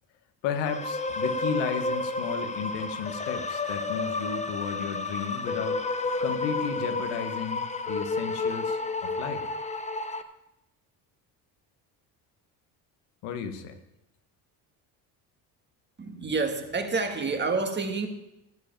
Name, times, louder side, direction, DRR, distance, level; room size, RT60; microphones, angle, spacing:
voice 1, 0.4-5.8 6.2-9.4 13.2-13.7, left 6 dB, 85° left, 8 dB, 1.3 m, -33 dB
sound 1, 0.6-10.2, left 3 dB, 15° left, 0.9 m, -31 dB
voice 2, 16.0-18.1, right 4 dB, 25° right, 5 dB, 1.7 m, -28 dB
13.5 x 4.9 x 9.1 m, 0.88 s
supercardioid pair, 100°, 42 cm